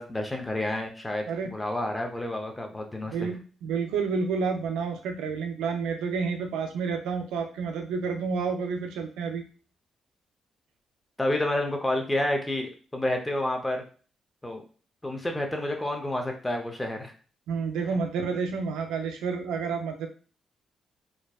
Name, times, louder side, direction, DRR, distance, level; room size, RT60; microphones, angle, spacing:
voice 1, 0.0-1.3 1.5-3.3 11.2-13.8 14.4-14.6 15.0-17.1 17.8-18.0, left 1 dB, 15° left, 3 dB, 0.6 m, -29 dB
voice 2, 3.1-9.4 17.5-20.1, right 5 dB, 85° right, 5 dB, 0.3 m, -30 dB
2.5 x 2.1 x 2.3 m, 0.39 s
supercardioid pair, 60°, 0 cm